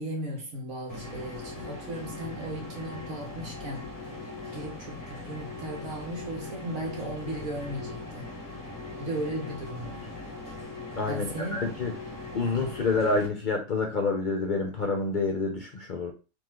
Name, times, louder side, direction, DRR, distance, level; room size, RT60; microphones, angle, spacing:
voice 1, 0.0-3.9 4.5-8.3 9.0-10.1 11.1-11.7, right 1 dB, 75° right, 1.6 m, -36 dB
sound 1, 0.9-13.3, left 2 dB, 15° left, 0.8 m, -40 dB
voice 2, 11.0-11.9 12.3-16.1, left 3 dB, 50° left, 0.6 m, -28 dB
3.8 x 3.0 x 3.0 m
omnidirectional pair, 1.4 m